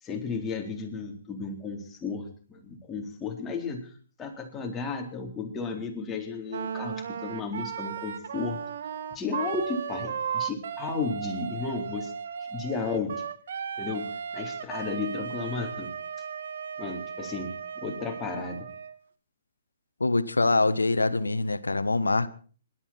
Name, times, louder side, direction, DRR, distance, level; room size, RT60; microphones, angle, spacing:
voice 1, 0.0-3.9 4.2-8.6 9.1-12.1 12.5-13.1 13.8-14.1 14.3-15.9 16.8-18.7, left 4 dB, 15° left, 1 dB, 3.9 m, -33 dB
Wind instrument woodwind instrument, 6.5-19.0, right 7 dB, 60° right, 1.4 m, -36 dB
voice 2, 20.0-22.3, left 3 dB, 90° left, 14 dB, 1.3 m, -24 dB
26.5 x 12.5 x 4.4 m, 0.42 s
figure-of-eight pair, 125°, 0 cm